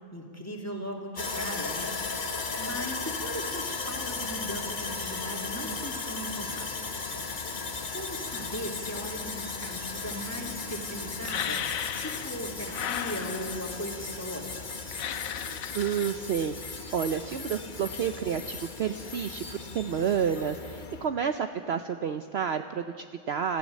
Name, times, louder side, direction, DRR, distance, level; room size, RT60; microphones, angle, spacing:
voice 1, 0.0-6.7 7.9-14.6, equal, 10° left, 0 dB, 2.6 m, -38 dB
Sawing, 1.2-21.1, left 4 dB, 40° left, 1.1 m, -36 dB
sound 1, 1.4-19.7, left 1 dB, 85° right, 7.1 m, -57 dB
sound 2, 11.3-12.4 12.7-13.8 14.9-16.1, left 9 dB, 80° left, 1.2 m, -35 dB
voice 2, 15.7-23.6, right 7 dB, 55° right, 8 dB, 0.8 m, -30 dB
25.5 x 14.5 x 7.5 m, 2.1 s
omnidirectional pair, 1.4 m